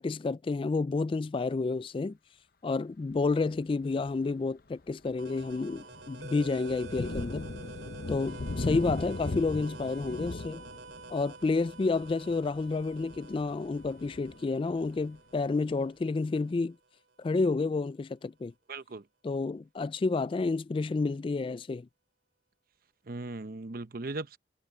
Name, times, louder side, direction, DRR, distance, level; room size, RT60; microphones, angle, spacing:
voice 1, 0.0-2.2 2.6-7.5 8.1-10.6 11.1-16.8 17.2-18.5 19.2-21.9, left 3 dB, 30° left, 0.3 m, -30 dB
Thunder, 3.1-3.4 4.0-4.1 4.6-15.2, left 2 dB, 55° left, 0.8 m, -40 dB
sound 1, 5.2-16.6, right 3 dB, 80° right, 3.5 m, -48 dB
voice 2, 18.7-19.0 23.1-24.4, right 2 dB, 55° right, 0.8 m, -38 dB
head